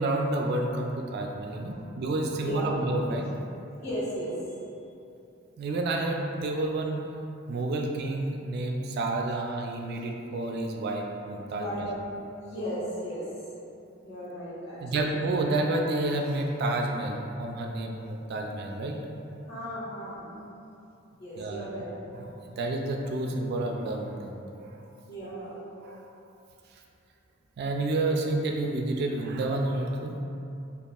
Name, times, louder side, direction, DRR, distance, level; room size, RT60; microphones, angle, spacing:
voice 1, 0.0-3.3 5.6-7.0 7.5-11.9 14.8-19.0 21.4-21.7 22.1-24.8 25.8-26.1 27.6-30.2, right 2 dB, 55° right, 1 dB, 0.3 m, -30 dB
voice 2, 3.8-4.6 11.5-11.8 12.3-13.2 14.0-15.1 19.5-20.4 21.2-21.9 25.1-25.6, equal, 55° left, -10 dB, 1.2 m, -36 dB
5.2 x 2.3 x 2.3 m, 2.7 s
head